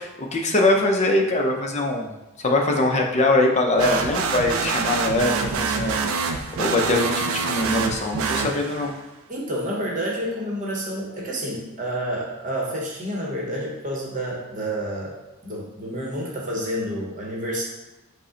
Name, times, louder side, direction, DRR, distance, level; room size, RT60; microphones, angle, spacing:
voice 1, 0.0-5.3 5.6-6.1 6.6-8.9, left 2 dB, 30° left, 2 dB, 0.5 m, -22 dB
sound 1, 3.8-9.0, right 5 dB, 70° right, 0.4 m, -26 dB
voice 2, 9.3-15.1 15.4-17.6, equal, 35° right, -3 dB, 0.9 m, -29 dB
5.2 x 2.1 x 3.8 m, 1.0 s
head